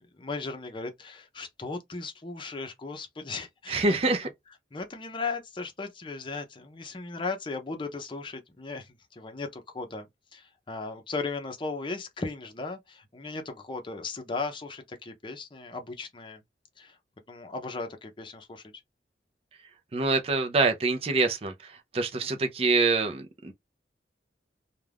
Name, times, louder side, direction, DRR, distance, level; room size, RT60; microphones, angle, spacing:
voice 1, 0.2-4.1 4.7-16.4 16.8-17.0 17.3-18.6 22.2-22.3, left 3 dB, 30° left, 0.6 m, -37 dB
voice 2, 3.7-4.3 19.9-21.5 21.9-23.5, right 3 dB, 35° right, 0.4 m, -25 dB
2.4 x 2.2 x 3.3 m
head